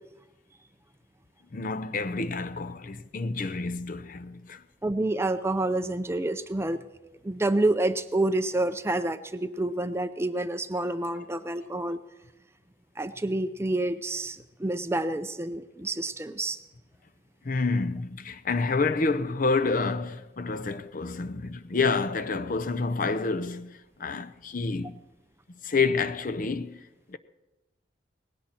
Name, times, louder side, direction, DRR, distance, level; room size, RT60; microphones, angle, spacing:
voice 1, 1.5-4.6 17.4-25.0 25.5-26.8 27.1-27.2, left 4 dB, 45° left, 0.6 m, -28 dB
voice 2, 4.8-6.8 7.2-12.0 13.0-16.6, right 2 dB, 15° right, 0.5 m, -28 dB
19.0 x 16.5 x 4.3 m
head